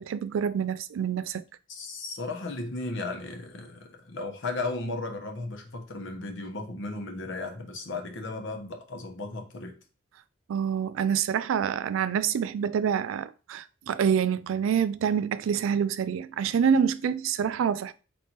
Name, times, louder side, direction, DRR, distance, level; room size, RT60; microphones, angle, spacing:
voice 1, 0.0-1.4 10.5-17.9, right 7 dB, 90° right, 0.3 m, -26 dB
voice 2, 1.7-9.8, left 2 dB, 65° left, 0.9 m, -35 dB
4.3 x 3.3 x 2.9 m
head